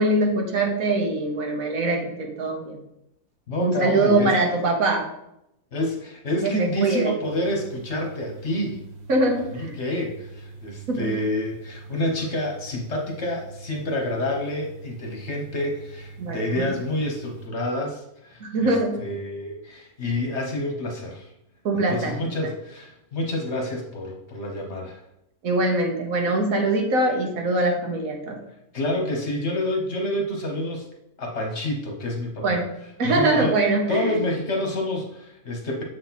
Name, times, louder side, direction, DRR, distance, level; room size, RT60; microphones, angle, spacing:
voice 1, 0.0-2.8 3.6-5.0 6.4-7.1 9.1-9.8 10.9-11.1 16.2-16.7 18.4-19.0 21.6-22.3 25.4-28.4 32.4-32.7 33.0-34.2, right 2 dB, 65° right, 2 dB, 1.4 m, -23 dB
voice 2, 3.5-4.3 5.7-8.8 9.5-18.7 19.0-21.3 21.9-25.0 28.7-30.9 31.2-32.6 33.0-33.5 33.9-35.8, left 1 dB, 50° left, 1 dB, 1.3 m, -28 dB
sound 1, 7.2-17.5, right 3 dB, 35° right, 0.8 m, -43 dB
7.2 x 4.3 x 4.1 m, 0.83 s
omnidirectional pair, 1.6 m